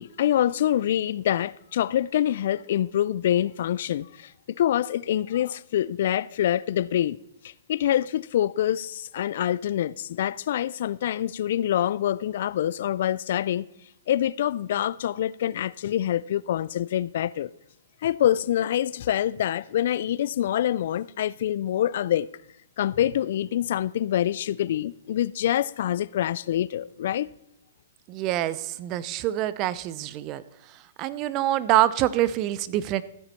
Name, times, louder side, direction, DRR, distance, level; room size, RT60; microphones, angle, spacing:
voice 1, 0.0-4.3 4.6-7.2 7.4-13.7 14.1-17.5 18.0-22.3 22.8-27.3, left 11 dB, 60° left, 0.3 m, -25 dB
voice 2, 28.1-30.4 31.0-33.0, right 13 dB, 35° right, 0.6 m, -25 dB
15.0 x 6.8 x 4.4 m
hypercardioid pair, 130°, 0 cm